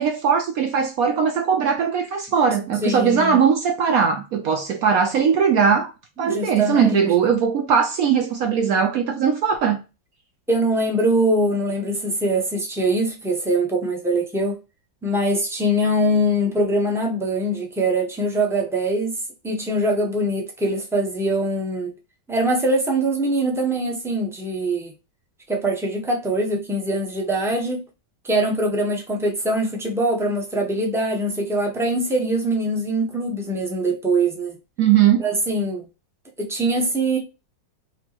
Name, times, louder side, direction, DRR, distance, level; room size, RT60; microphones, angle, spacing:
voice 1, 0.0-5.9 6.2-9.8 34.8-35.2, right 7 dB, 70° right, 0.8 m, -19 dB
voice 2, 2.8-3.4 6.2-7.1 10.5-14.6 15.0-19.1 19.4-21.9 22.3-24.9 25.5-27.8 28.2-34.6 35.2-35.8 36.4-37.2, right 1 dB, 5° right, 0.5 m, -23 dB
4.5 x 2.9 x 2.8 m
omnidirectional pair, 2.0 m